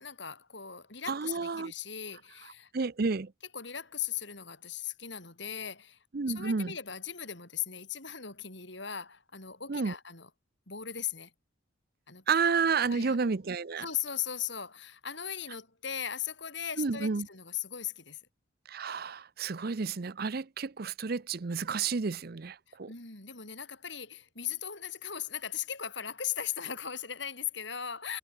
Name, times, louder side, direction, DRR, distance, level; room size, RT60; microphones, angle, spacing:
voice 1, 0.0-2.7 3.5-6.0 6.3-10.3 10.7-11.3 12.1-12.2 12.8-13.2 13.8-18.2 22.7-28.2, left 9 dB, 60° left, 5.1 m, -38 dB
voice 2, 1.1-1.7 2.7-3.3 6.1-6.8 9.7-9.9 12.3-13.9 16.8-17.3 18.7-22.9, right 5 dB, 50° right, 0.6 m, -31 dB
head